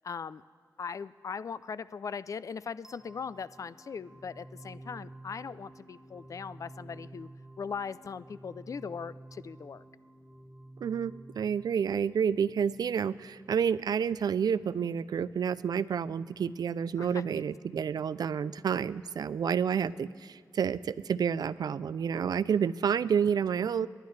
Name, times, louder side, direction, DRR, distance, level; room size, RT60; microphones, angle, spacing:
voice 1, 0.0-0.4 0.8-7.3 7.6-9.8 17.0-17.2, left 6 dB, 55° left, 17 dB, 0.4 m, -39 dB
sound 1, 2.8-13.8, right 1 dB, 5° right, 0.6 m, -51 dB
voice 2, 10.8-23.9, right 7 dB, 80° right, 18 dB, 0.4 m, -29 dB
28.0 x 11.0 x 3.3 m, 2.2 s
wide cardioid pair, 95°, 7 cm